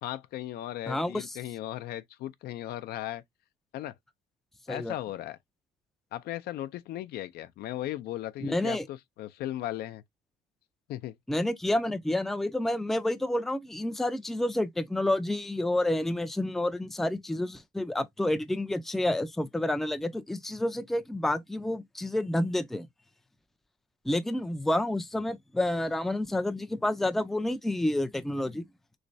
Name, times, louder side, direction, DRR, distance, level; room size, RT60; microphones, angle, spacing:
voice 1, 0.0-3.2 3.7-3.9 4.7-5.4 6.1-10.0 10.9-11.2, left 13 dB, 70° left, 0.4 m, -37 dB
voice 2, 0.9-1.3 4.7-4.9 8.4-8.8 11.3-22.9 24.1-28.6, left 1 dB, ahead, 0.4 m, -29 dB
3.2 x 3.0 x 2.6 m
cardioid pair, 110°, 17 cm